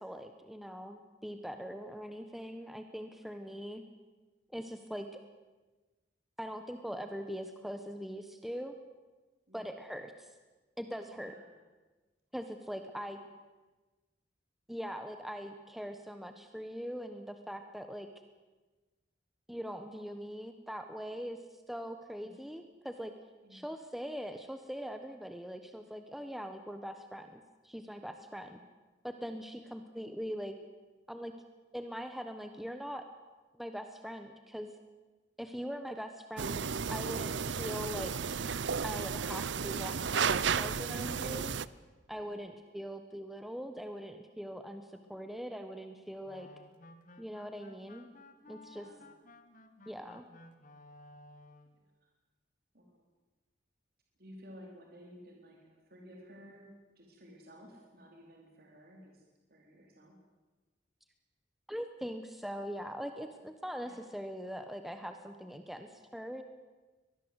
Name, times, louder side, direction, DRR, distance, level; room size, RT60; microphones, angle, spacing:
voice 1, 0.0-3.8 4.5-5.2 6.4-8.8 9.5-10.3 10.8-11.3 12.3-13.2 14.7-18.1 19.5-23.1 23.5-28.6 29.0-30.6 31.1-31.3 31.7-33.1 33.5-34.7 35.4-36.6 36.9-38.1 38.8-41.5 42.1-46.5 47.2-48.1 48.5-48.8 49.9-50.2 61.7-66.4, equal, ahead, 7 dB, 1.1 m, -42 dB
voice 2, 11.1-11.5 22.2-22.4 23.4-23.7 28.4-28.5 42.2-42.5 48.7-49.1 52.0-52.1 52.7-53.0 54.2-59.2 59.5-60.2 63.8-64.0, equal, 55° right, 0 dB, 4.4 m, -55 dB
sound 1, 36.4-41.7, right 6 dB, 85° right, 0.7 m, -33 dB
sound 2, 46.2-51.8, left 2 dB, 45° left, 1.9 m, -56 dB
23.5 x 19.5 x 8.1 m, 1.3 s
head